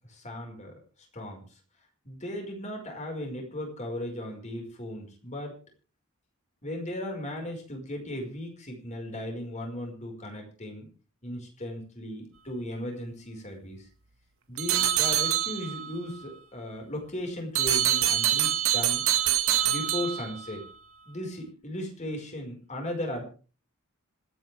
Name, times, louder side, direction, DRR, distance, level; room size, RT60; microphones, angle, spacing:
voice 1, 0.1-0.8 1.1-1.4 2.0-5.6 6.6-10.9 11.2-13.9 14.5-19.1 19.6-20.6 21.1-23.2, left 1 dB, 35° left, 2 dB, 5.4 m, -36 dB
sound 1, 14.6-15.9 17.5-20.6, right 11 dB, 80° right, 1.9 m, -25 dB
26.5 x 9.6 x 3.6 m, 0.37 s
head